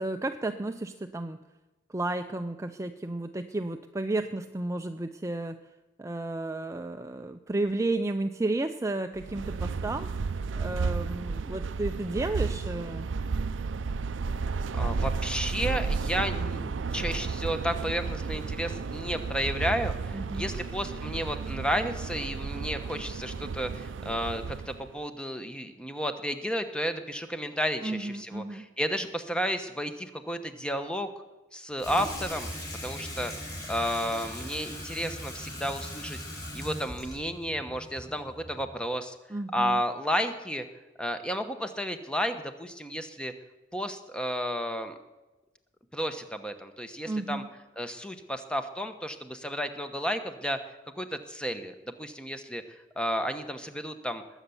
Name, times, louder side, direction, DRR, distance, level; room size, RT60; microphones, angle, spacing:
voice 1, 0.0-1.4 1.9-5.6 6.0-10.1 10.6-13.1 20.1-20.5 27.8-28.7 39.3-39.8 47.1-47.5, right 2 dB, 15° right, 7 dB, 0.5 m, -32 dB
sound 1, 9.2-24.9, right 4 dB, 75° right, 0.5 m, -33 dB
voice 2, 14.7-31.1 31.5-32.5 32.8-33.3 33.7-36.2 36.5-39.1 39.5-40.6 41.0-43.3 43.7-44.9 45.9-47.4 47.8-50.6 51.0-52.6 53.0-54.2, equal, 5° left, 8 dB, 1.0 m, -32 dB
Water tap faucet / Sink (filling or washing), 31.8-38.8, equal, 20° left, 6.1 m, -40 dB
20.5 x 8.1 x 7.1 m, 1.1 s
head